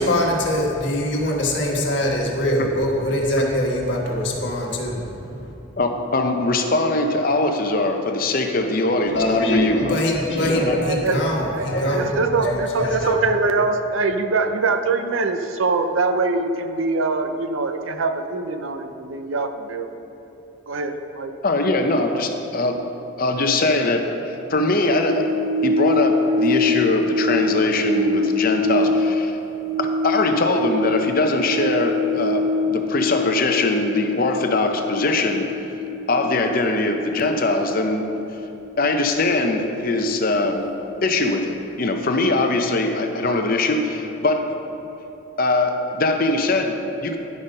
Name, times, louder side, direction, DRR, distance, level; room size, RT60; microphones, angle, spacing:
voice 1, 0.0-5.5 9.1-13.1, left 1 dB, 60° left, -2 dB, 1.4 m, -23 dB
voice 2, 5.8-10.0 10.4-10.8 21.4-22.8 23.2-24.1 24.5-25.2 25.6-29.3 29.8-35.5 36.1-38.1 38.8-40.7 41.0-44.4 45.4-47.2, left 2 dB, 45° left, 5 dB, 0.7 m, -21 dB
voice 3, 10.8-11.2 11.5-11.7 11.9-19.9 20.7-21.3, right 3 dB, 80° right, 7 dB, 0.6 m, -23 dB
sound 1, 24.9-41.4 41.7-41.9, left 2 dB, 20° right, 1.8 m, -25 dB
10.5 x 5.8 x 5.4 m, 3.0 s
head